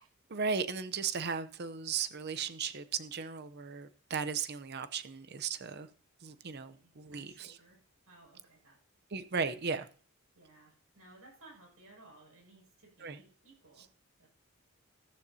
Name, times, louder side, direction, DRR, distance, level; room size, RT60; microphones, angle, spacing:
voice 1, 0.3-5.9 6.2-7.5 9.1-9.9 13.0-13.2, right 5 dB, 50° right, 0.7 m, -36 dB
voice 2, 6.4-8.8 10.3-13.9 14.2-14.3, right 2 dB, 85° right, 6.2 m, -59 dB
14.5 x 13.5 x 2.8 m
head